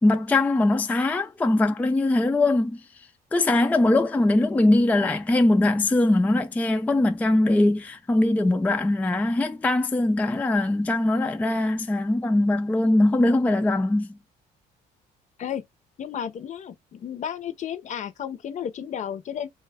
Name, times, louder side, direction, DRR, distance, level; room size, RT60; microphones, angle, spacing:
voice 1, 0.0-2.8 3.3-14.2, left 2 dB, 10° left, 0.3 m, -21 dB
voice 2, 16.0-19.5, left 9 dB, 45° left, 0.6 m, -33 dB
3.1 x 2.2 x 3.4 m
cardioid pair, 110°, 17 cm